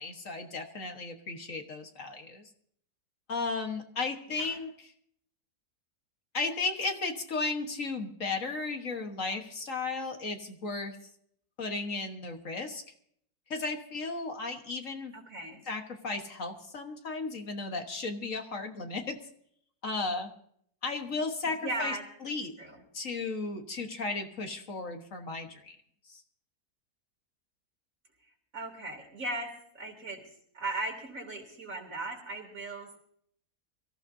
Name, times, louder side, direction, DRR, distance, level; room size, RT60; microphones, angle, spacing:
voice 1, 0.0-2.4 3.3-4.9 6.3-11.0 11.6-12.8 13.5-15.1 15.7-19.2 19.8-20.3 20.8-21.9 22.2-22.5 22.9-25.8 26.1-26.2, left 3 dB, 55° left, 4 dB, 1.7 m, -35 dB
voice 2, 4.3-4.6 15.1-15.6 21.4-22.0 22.6-22.8 28.5-29.5 29.7-30.2 30.5-33.0, right 2 dB, 60° right, 2 dB, 3.5 m, -37 dB
24.5 x 14.5 x 2.7 m, 0.65 s
omnidirectional pair, 1.7 m